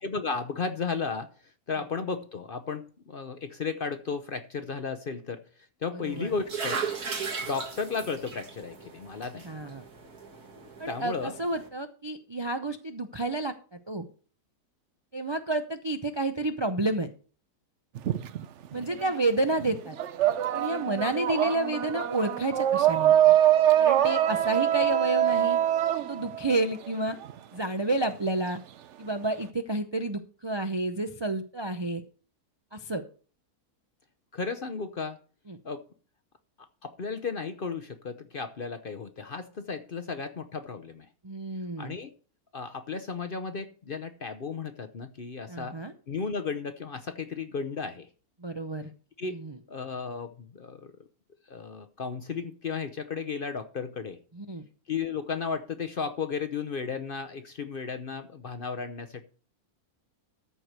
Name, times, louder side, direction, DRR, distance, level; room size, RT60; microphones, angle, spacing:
voice 1, 0.0-5.4 5.8-6.8 7.4-9.5 10.9-11.3 34.3-35.2 35.6-35.8 36.8-41.1 41.8-42.1 42.5-45.8 46.1-48.1 49.2-49.4 49.7-50.9 51.5-54.2 54.9-59.2, left 5 dB, 50° left, 0.7 m, -34 dB
voice 2, 5.9-6.3 9.4-9.8 10.8-14.1 15.1-17.1 18.7-20.0 20.5-23.4 23.8-25.6 26.1-27.2 27.5-28.6 29.0-32.0 32.7-33.0 35.5-35.6 41.2-42.0 45.5-45.9 48.4-48.9 49.2-49.6 54.3-54.7, right 2 dB, 35° right, 0.4 m, -30 dB
sound 1, 6.1-11.7, right 5 dB, 80° right, 2.3 m, -37 dB
sound 2, 17.9-19.2 19.5-27.3, right 11 dB, 60° right, 0.8 m, -24 dB
13.5 x 4.6 x 6.6 m
omnidirectional pair, 1.6 m